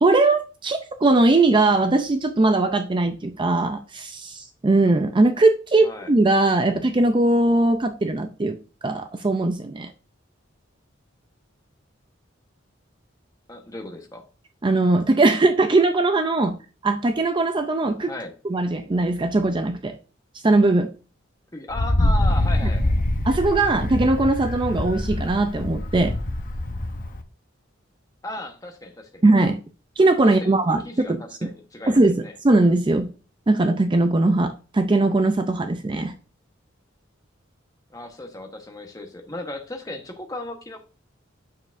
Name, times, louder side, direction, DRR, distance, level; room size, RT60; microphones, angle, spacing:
voice 1, 0.0-8.6 8.8-9.9 14.6-16.6 16.8-18.1 18.4-20.0 20.4-20.9 23.2-26.1 29.2-29.6 30.0-31.5 31.9-32.2 32.4-33.1 33.5-36.1, right 2 dB, 25° right, 0.5 m, -20 dB
voice 2, 5.8-6.1 13.5-14.3 18.0-18.3 21.5-23.1 28.2-29.2 30.2-32.4 37.9-40.8, left 1 dB, 20° left, 1.2 m, -36 dB
Wind, 21.7-27.2, left 1 dB, 45° left, 0.8 m, -24 dB
8.4 x 6.9 x 2.6 m
head